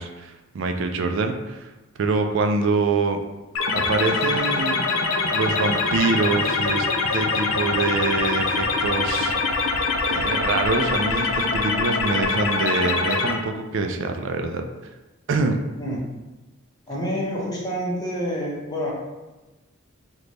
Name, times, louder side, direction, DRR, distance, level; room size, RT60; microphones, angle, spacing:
voice 1, 0.0-1.7 2.0-3.2 3.7-4.8 5.3-6.9 7.1-9.4 10.1-14.6 15.3-15.6, right 3 dB, 60° right, 5 dB, 0.3 m, -25 dB
sound 1, 3.5-13.3, left 4 dB, 70° left, 0.4 m, -23 dB
voice 2, 16.9-18.9, equal, 15° left, -5 dB, 0.7 m, -27 dB
3.2 x 2.2 x 3.8 m, 1.1 s
head